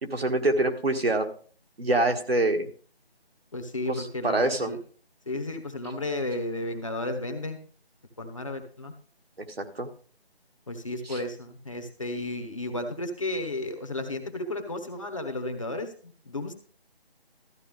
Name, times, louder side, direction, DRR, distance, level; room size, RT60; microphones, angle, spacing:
voice 1, 0.0-1.3 1.8-2.7 3.9-4.7 9.6-9.9 11.0-11.2, right 2 dB, 70° right, 4 dB, 1.8 m, -25 dB
voice 2, 3.5-4.8 5.3-7.6 8.2-8.9 10.7-15.9 16.2-16.5, left 2 dB, 30° left, 6 dB, 1.1 m, -33 dB
13.5 x 9.4 x 3.6 m, 0.43 s
figure-of-eight pair, 170°, 32 cm